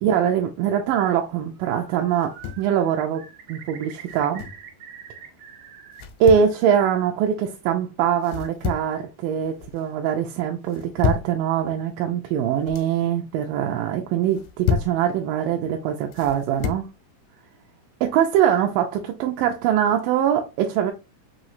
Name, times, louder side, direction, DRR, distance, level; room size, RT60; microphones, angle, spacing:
voice 1, 0.0-3.2 3.5-4.5 6.2-16.9 18.0-20.9, right 9 dB, 80° right, 2.1 m, -22 dB
Bird, 1.5-2.0 2.3-6.0 6.3-7.1, right 8 dB, 65° right, 2.2 m, -45 dB
sound 1, 2.1-2.7 4.0-4.7 5.9-6.5 8.2-9.0 9.4-9.8 10.7-11.4 12.4-12.9 14.2-15.0 16.1-16.9, left 8 dB, 90° left, 2.5 m, -29 dB
5.5 x 3.0 x 2.5 m
omnidirectional pair, 4.1 m